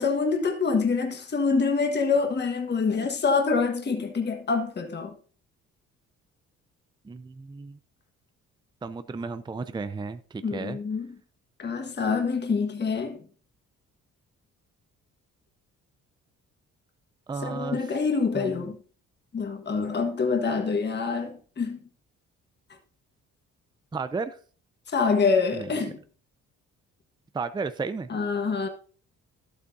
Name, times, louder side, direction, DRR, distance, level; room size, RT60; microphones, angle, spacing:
voice 1, 0.0-5.2 10.4-11.1 11.6-13.2 17.4-18.8 19.3-21.8 24.9-26.0 28.1-28.7, left 4 dB, 35° left, 1.6 m, -26 dB
voice 2, 7.0-7.8 8.8-10.8 17.3-17.8 18.3-18.7 23.9-24.4 25.5-25.7 27.3-28.1, right 4 dB, 15° right, 0.5 m, -33 dB
11.5 x 8.3 x 2.7 m
cardioid pair, 90°, 30 cm